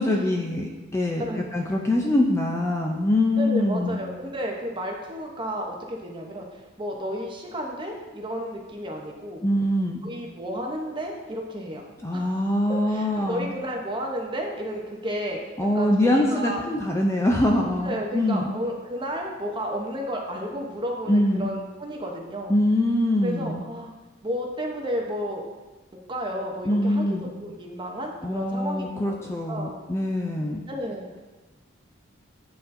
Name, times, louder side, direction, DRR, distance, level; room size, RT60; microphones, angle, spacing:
voice 1, 0.0-4.0 9.4-10.0 12.0-13.5 15.6-18.5 21.1-21.5 22.5-23.6 26.6-27.3 28.2-30.6, left 1 dB, 15° left, 0 dB, 0.4 m, -24 dB
voice 2, 1.2-1.6 3.4-9.4 10.0-11.8 12.1-12.4 12.7-15.4 15.7-16.6 17.8-22.6 23.2-23.9 24.2-25.4 26.1-29.8 30.7-31.2, equal, 25° right, 0 dB, 0.8 m, -32 dB
9.1 x 4.1 x 2.6 m, 1.2 s
head